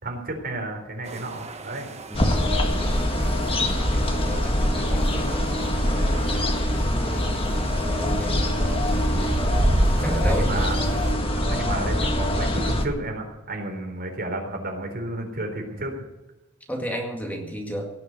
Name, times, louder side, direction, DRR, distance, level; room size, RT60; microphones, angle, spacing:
voice 1, 0.0-1.9 10.0-16.0, right 2 dB, 50° right, 2 dB, 3.9 m, -32 dB
sound 1, 1.0-11.1, right 1 dB, 30° right, 1.2 m, -31 dB
sound 2, 2.1-12.8, left 1 dB, 25° left, 1.7 m, -24 dB
voice 2, 2.1-2.4 3.6-5.4 5.8-6.4 6.7-7.3 8.0-9.1 10.0-10.7 16.7-17.9, equal, 10° left, 1 dB, 2.1 m, -34 dB
18.0 x 7.2 x 9.5 m, 1.1 s
head